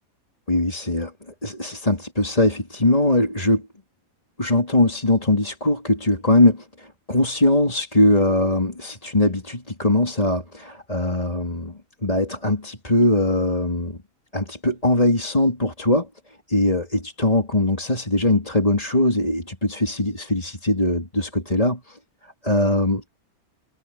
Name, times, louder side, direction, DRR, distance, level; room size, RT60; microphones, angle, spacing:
voice 1, 0.5-1.1 1.4-3.7 4.4-14.0 14.3-16.1 16.5-22.0 22.4-23.0, left 1 dB, 25° left, 3.7 m, -21 dB
omnidirectional pair, 1.5 m